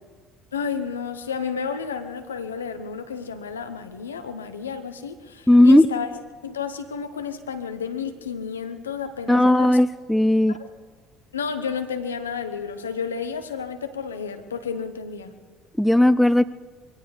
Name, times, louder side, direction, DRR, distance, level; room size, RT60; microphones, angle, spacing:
voice 1, 0.5-6.1 6.4-9.8 10.5-10.7 11.3-15.4, left 6 dB, 85° left, 9 dB, 1.0 m, -31 dB
voice 2, 5.5-5.9 9.3-10.6 15.8-16.4, left 1 dB, 5° left, 17 dB, 0.5 m, -16 dB
23.5 x 17.0 x 3.3 m, 1.5 s
hypercardioid pair, 60°, 0 cm